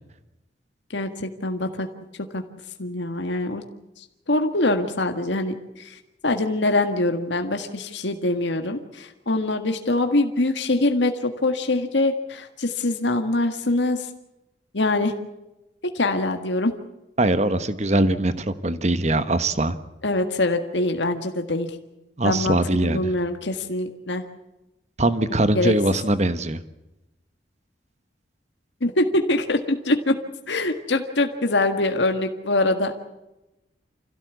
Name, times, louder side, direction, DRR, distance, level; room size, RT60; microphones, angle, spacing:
voice 1, 0.9-1.9 2.2-2.4 2.8-3.6 4.0-14.1 14.7-15.1 15.8-16.7 20.0-21.7 22.2-24.3 25.6-25.7 28.8-30.1 30.5-32.9, left 2 dB, 80° left, 6 dB, 1.8 m, -24 dB
voice 2, 17.2-19.8 22.2-23.1 25.0-26.6, right 2 dB, 40° right, 12 dB, 1.2 m, -22 dB
27.0 x 16.5 x 8.4 m, 0.97 s
head